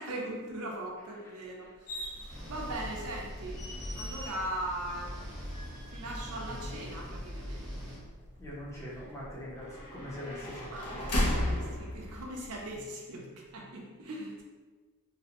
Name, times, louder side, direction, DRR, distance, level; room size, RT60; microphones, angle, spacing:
voice 1, 0.0-3.6 3.9-5.1 5.6-7.9 10.7-14.4, right 1 dB, 75° right, -1 dB, 0.5 m, -40 dB
sound 1, 1.9-12.7, left 1 dB, 80° left, 0.7 m, -38 dB
sound 2, 2.3-8.0, equal, 20° right, 0.8 m, -42 dB
voice 2, 8.4-11.1, left 1 dB, 10° left, -7 dB, 0.6 m, -42 dB
2.6 x 2.1 x 2.8 m, 1.4 s
head